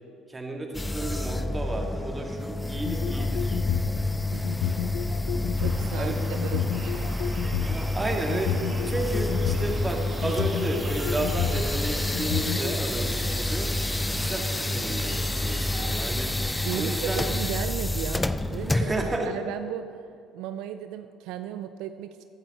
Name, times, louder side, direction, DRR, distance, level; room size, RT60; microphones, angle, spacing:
voice 1, 0.3-3.6 5.9-6.2 7.7-13.7 14.2-16.4 16.8-17.2 18.7-19.4, right 2 dB, 20° right, 2 dB, 1.9 m, -32 dB
sound 1, 0.7-19.2, left 2 dB, 10° left, 0.5 m, -29 dB
sound 2, 2.8-3.9 4.4-5.7 6.4-7.7 8.3-9.7 10.2-11.6 12.1-12.8, left 10 dB, 70° left, 0.7 m, -30 dB
sound 3, 5.6-17.4, right 3 dB, 35° right, 1.8 m, -41 dB
voice 2, 5.6-7.1 14.1-14.2 16.6-18.9 19.3-20.0 20.3-22.2, right 11 dB, 75° right, 10 dB, 0.4 m, -35 dB
15.0 x 9.8 x 4.2 m, 2.4 s
supercardioid pair, 70°, 0 cm